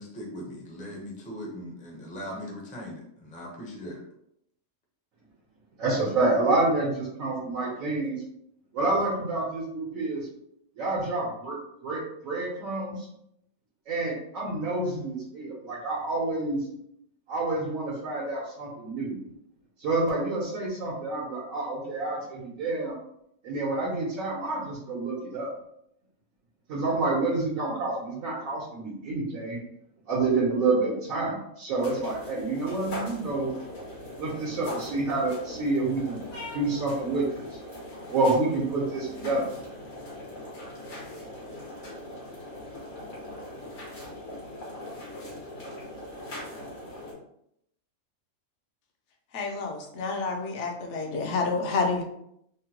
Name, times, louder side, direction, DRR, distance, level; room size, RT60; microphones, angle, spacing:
voice 1, 0.0-4.0, equal, 10° left, -2 dB, 0.4 m, -39 dB
voice 2, 5.8-8.2 8.7-10.3 10.8-11.6 11.8-13.1 13.9-16.6 17.3-19.2 19.8-23.0 23.4-25.5 26.7-29.6 30.1-33.5 34.2-36.2 36.5-37.6 38.1-39.4, right 2 dB, 80° right, -5 dB, 1.2 m, -28 dB
sound 1, 31.8-47.1, left 1 dB, 90° left, 1.7 m, -40 dB
voice 3, 49.3-52.0, left 3 dB, 65° left, 2 dB, 0.9 m, -29 dB
3.6 x 2.2 x 2.8 m, 0.75 s
omnidirectional pair, 1.4 m